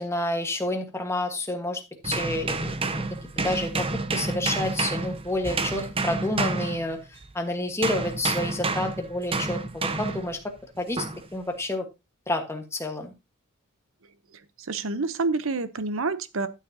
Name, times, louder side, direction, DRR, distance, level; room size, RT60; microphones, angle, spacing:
voice 1, 0.0-3.0 3.4-7.0 7.3-11.0 11.3-11.9 12.3-13.1, left 1 dB, 10° left, 1.4 m, -29 dB
sound 1, 2.0-7.3 7.8-10.3 11.0-11.3, right 3 dB, 25° right, 0.7 m, -29 dB
voice 2, 14.3-16.5, right 3 dB, 65° right, 0.8 m, -28 dB
12.5 x 7.1 x 2.8 m
head